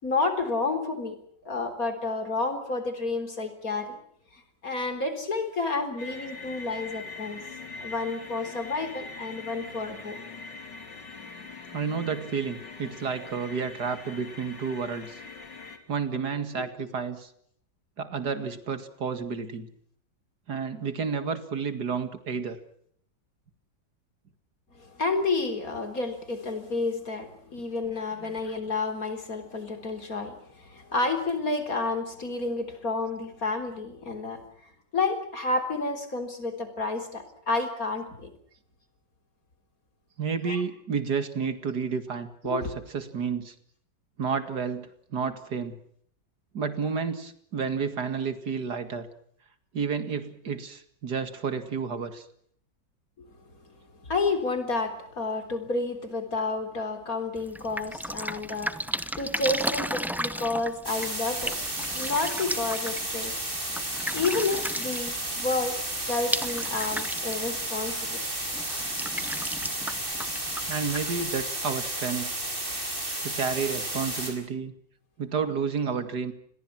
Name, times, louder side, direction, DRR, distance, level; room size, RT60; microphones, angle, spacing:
voice 1, 0.0-1.2 1.4-4.0 4.6-7.4 7.8-10.2 24.7-34.4 34.9-38.3 40.5-40.6 42.4-42.7 53.2-53.3 54.0-61.6 61.9-63.3 64.1-65.8 66.1-68.2, left 3 dB, 55° left, 7 dB, 4.2 m, -30 dB
sound 1, 6.0-15.8, left 4 dB, 80° left, 3.5 m, -42 dB
voice 2, 11.7-15.2 15.9-17.3 18.0-19.7 20.5-22.6 28.2-28.3 40.2-43.5 44.2-45.8 46.5-49.1 49.7-52.3 70.7-72.3 73.2-74.7 75.2-76.3, right 5 dB, 65° right, 10 dB, 2.6 m, -31 dB
Drip, 57.4-71.4, equal, ahead, 0.5 m, -35 dB
sound 2, 60.8-74.3, right 1 dB, 30° right, 6.0 m, -32 dB
28.0 x 21.5 x 6.1 m, 0.66 s
omnidirectional pair, 1.9 m